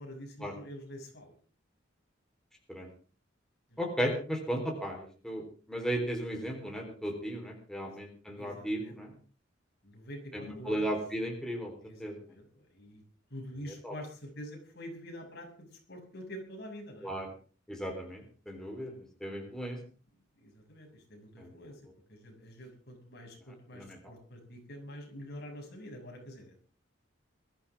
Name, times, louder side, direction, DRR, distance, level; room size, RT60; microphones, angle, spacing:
voice 1, 0.0-1.3 3.7-3.8 7.8-8.0 8.4-9.0 9.8-11.0 11.8-13.0 13.3-17.1 19.3-19.8 20.4-21.8 22.1-26.6, equal, 55° left, 1 dB, 6.7 m, -46 dB
voice 2, 3.8-9.1 10.3-11.7 12.0-12.2 13.8-13.9 17.0-17.3 17.7-18.9 19.2-19.8 21.4-21.5 23.7-24.0, equal, 5° left, 1 dB, 3.9 m, -35 dB
21.5 x 14.5 x 3.6 m, 0.40 s
head